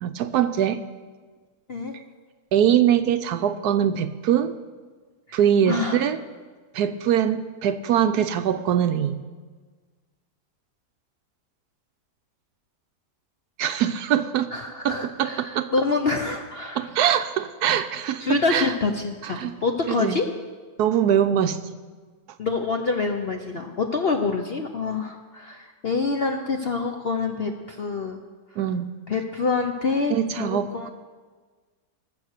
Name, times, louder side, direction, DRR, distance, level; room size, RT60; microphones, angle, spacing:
voice 1, 0.0-0.8 2.5-4.5 5.3-6.2 6.7-9.2 13.6-14.5 14.8-15.7 16.8-18.7 19.2-19.5 19.9-20.2 20.8-21.6 28.6-28.9 30.1-30.9, right 9 dB, 70° right, 10 dB, 1.0 m, -22 dB
voice 2, 5.7-6.0 14.5-16.9 18.2-20.3 22.4-28.2 29.1-30.9, left 4 dB, 55° left, 4 dB, 0.7 m, -26 dB
20.0 x 6.7 x 6.5 m, 1.4 s
omnidirectional pair, 1.9 m